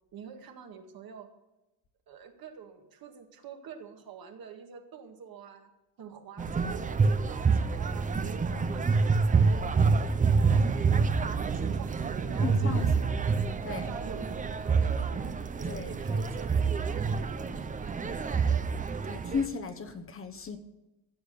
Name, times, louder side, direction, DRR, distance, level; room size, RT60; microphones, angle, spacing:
voice 1, 0.1-1.3 2.1-5.7 6.0-10.0 10.4-11.0 11.3-13.2 13.7-15.3 15.6-17.9, right 7 dB, 60° right, 4 dB, 1.9 m, -46 dB
sound 1, 6.4-19.5, right 4 dB, 20° right, 0.5 m, -27 dB
voice 2, 12.4-13.3 13.6-13.8 15.7-15.9 19.0-20.6, left 5 dB, 30° left, 6 dB, 1.0 m, -35 dB
15.0 x 8.3 x 6.8 m, 0.98 s
cardioid pair, 175°, 41 cm